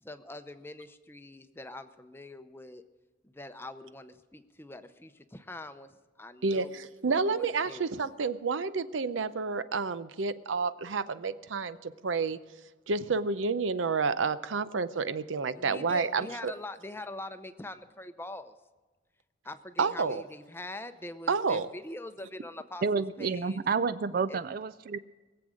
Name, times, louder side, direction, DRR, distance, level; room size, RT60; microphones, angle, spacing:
voice 1, 0.0-2.8 3.2-6.7 7.0-7.9 15.6-18.6 19.4-23.6 24.3-24.4, left 1 dB, 10° left, 10 dB, 0.6 m, -43 dB
voice 2, 6.4-12.4 12.9-16.5 19.8-20.2 21.3-21.7, right 4 dB, 85° right, 14 dB, 0.6 m, -30 dB
voice 3, 22.8-25.0, right 5 dB, 50° right, 14 dB, 0.4 m, -29 dB
21.0 x 7.8 x 6.3 m, 1.2 s
head